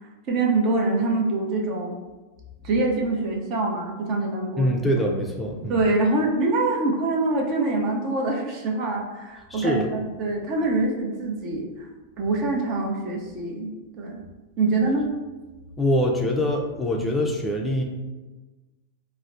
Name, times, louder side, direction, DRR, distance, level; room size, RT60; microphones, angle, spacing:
voice 1, 0.3-2.0 2.6-4.7 5.7-11.9 12.2-14.2 14.6-15.1, right 2 dB, 45° right, 0 dB, 0.7 m, -25 dB
voice 2, 4.6-5.8 9.5-9.9 15.8-17.8, equal, 10° left, -1 dB, 0.4 m, -24 dB
4.0 x 2.0 x 2.5 m, 1.2 s
hypercardioid pair, 105°, 0 cm